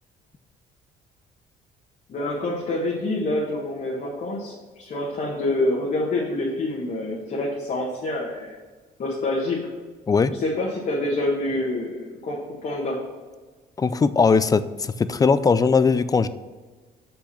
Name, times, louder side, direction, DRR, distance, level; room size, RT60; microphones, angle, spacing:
voice 1, 2.1-8.6 9.0-9.6 10.3-13.0, left 2 dB, 50° left, -4 dB, 1.6 m, -27 dB
voice 2, 13.8-16.3, left 5 dB, 20° left, 14 dB, 0.4 m, -19 dB
6.3 x 5.9 x 5.6 m, 1.4 s
cardioid pair, 110°, 17 cm